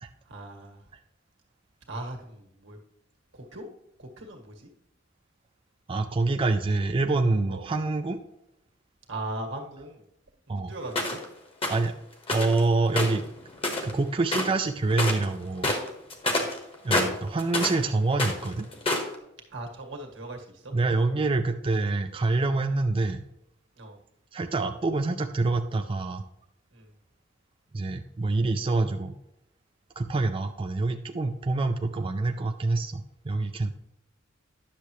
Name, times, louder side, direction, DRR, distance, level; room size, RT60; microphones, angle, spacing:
voice 1, 0.3-0.8 1.9-2.8 3.3-3.7 4.0-4.7 7.5-7.6 9.1-10.0 10.5-11.2 16.2-16.4 19.5-20.7 23.8-24.0 26.7-26.9, right 2 dB, 80° right, 2 dB, 1.7 m, -39 dB
voice 2, 5.9-8.2 10.5-10.7 11.7-11.9 12.3-13.2 13.8-15.7 16.8-18.7 20.7-23.2 24.3-26.2 27.7-29.2 30.0-33.7, right 3 dB, 30° right, 5 dB, 0.4 m, -26 dB
sound 1, 10.9-11.2 11.6-11.8 12.3-12.6 12.9-14.0 14.3-14.6 14.9-15.3 15.6-17.8 18.1-19.1, left 2 dB, 30° left, 1.4 m, -27 dB
10.0 x 6.7 x 3.1 m, 0.85 s
head